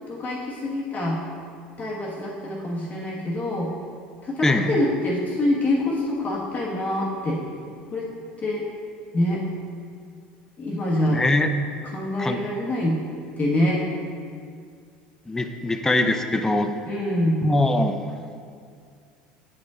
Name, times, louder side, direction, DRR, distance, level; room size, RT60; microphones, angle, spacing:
voice 1, 0.1-1.2 1.8-3.7 4.2-7.4 7.9-8.1 8.4-8.6 9.1-9.4 10.6-11.2 11.9-13.0 13.4-13.8 16.8-17.4, left 1 dB, 35° left, -4 dB, 1.3 m, -25 dB
voice 2, 4.4-4.7 11.1-11.5 12.2-12.4 15.3-16.7 17.4-18.0, left 2 dB, 10° left, 6 dB, 0.5 m, -22 dB
8.1 x 5.2 x 3.6 m, 2.2 s
hypercardioid pair, 85°, 5 cm